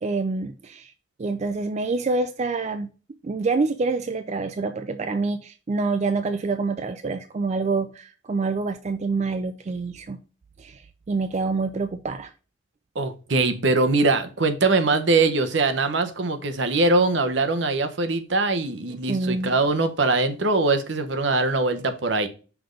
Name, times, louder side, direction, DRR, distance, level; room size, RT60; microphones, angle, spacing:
voice 1, 0.0-0.9 1.2-2.9 3.2-10.2 10.6-12.3 19.1-19.5, right 3 dB, 35° right, 0.4 m, -26 dB
voice 2, 12.9-22.3, right 3 dB, 65° right, 0.9 m, -22 dB
5.9 x 3.5 x 5.1 m
head